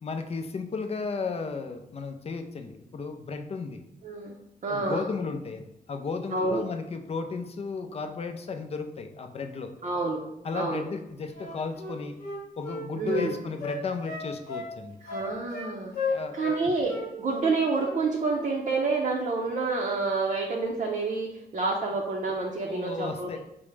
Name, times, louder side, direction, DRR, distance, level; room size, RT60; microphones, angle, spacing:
voice 1, 0.0-3.8 4.7-9.7 10.4-12.2 12.6-15.0 16.1-16.7 22.6-23.4, left 4 dB, 40° left, 7 dB, 0.4 m, -34 dB
voice 2, 4.0-5.1 6.3-6.7 9.8-10.2 10.5-10.8 13.0-13.4 15.0-15.9 16.3-23.4, right 3 dB, 50° right, -1 dB, 0.5 m, -28 dB
Wind instrument woodwind instrument, 11.3-13.3 13.6-14.7 15.1-15.7 15.9-16.6 16.9-17.1 17.4-18.0 18.3-18.5, left 3 dB, 75° left, 1.0 m, -34 dB
4.6 x 2.0 x 3.2 m, 0.85 s
cardioid pair, 95°, 15 cm